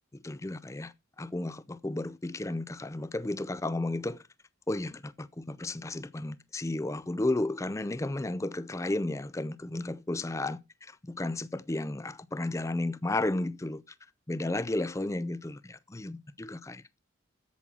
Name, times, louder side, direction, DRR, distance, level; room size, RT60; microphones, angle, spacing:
voice 1, 0.2-0.9 1.2-4.2 4.7-13.8 14.3-16.8, left 2 dB, 15° left, 0.4 m, -33 dB
8.4 x 7.6 x 5.8 m
head